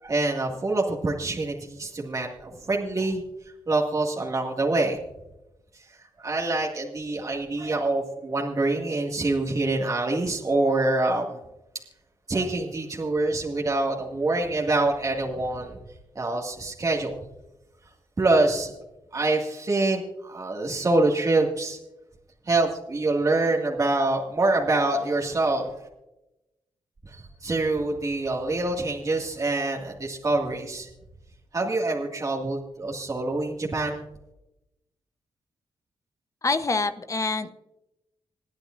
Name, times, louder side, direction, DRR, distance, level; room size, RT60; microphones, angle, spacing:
voice 1, 0.0-5.0 5.7-11.4 12.3-15.8 16.2-17.2 18.2-18.7 19.1-21.8 22.5-25.9 27.1-30.9 31.5-34.0, right 2 dB, 35° right, -1 dB, 2.1 m, -25 dB
voice 2, 36.4-37.5, left 3 dB, 35° left, 10 dB, 0.9 m, -26 dB
27.5 x 9.6 x 2.6 m, 0.93 s
cardioid pair, 65°, 9 cm